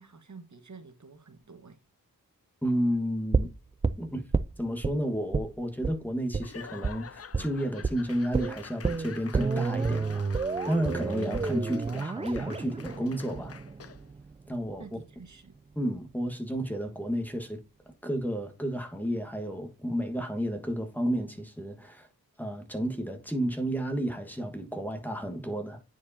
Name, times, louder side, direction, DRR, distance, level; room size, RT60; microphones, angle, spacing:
voice 1, 0.0-1.8 14.8-15.5, right 4 dB, 50° right, 1.4 m, -49 dB
voice 2, 2.6-3.5 4.0-4.2 4.6-10.3 10.7-13.6 14.5-14.8 15.7-17.6 18.0-22.1 22.4-25.8, equal, 5° left, 1.4 m, -31 dB
sound 1, 3.3-5.0 5.3-5.5 5.8-6.0 6.3-6.5 6.8-7.0 7.3-7.5 7.8-8.0 8.3-14.3 14.6-14.7, right 4 dB, 20° right, 0.3 m, -30 dB
Laughter / Applause / Crowd, 6.4-14.1, left 6 dB, 40° left, 0.6 m, -47 dB
9.7 x 4.6 x 2.7 m
wide cardioid pair, 90°, 36 cm